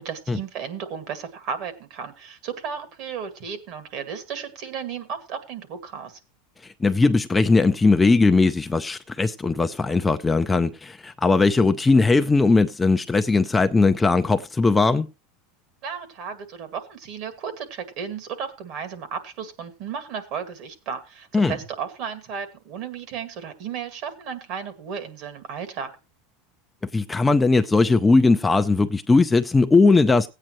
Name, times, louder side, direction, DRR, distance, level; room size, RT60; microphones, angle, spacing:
voice 1, 0.0-6.2 15.8-25.9, right 7 dB, 50° right, 2.1 m, -34 dB
voice 2, 6.8-15.1 21.3-21.5 26.9-30.3, left 3 dB, 10° left, 0.5 m, -19 dB
16.5 x 8.8 x 3.1 m
supercardioid pair, 150°, 0 cm